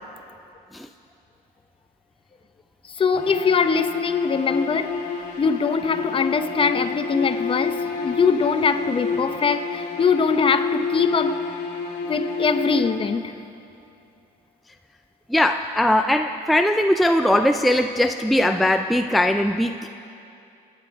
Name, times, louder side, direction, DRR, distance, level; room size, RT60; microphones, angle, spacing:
voice 1, 2.9-4.9 5.4-11.4 12.0-13.3, left 5 dB, 30° left, 9 dB, 0.9 m, -22 dB
sound 1, 3.1-13.4, left 4 dB, 50° left, 2.7 m, -29 dB
voice 2, 15.3-19.9, left 1 dB, ahead, 6 dB, 0.4 m, -20 dB
27.0 x 9.8 x 4.8 m, 2.6 s
cardioid pair, 110°, 17 cm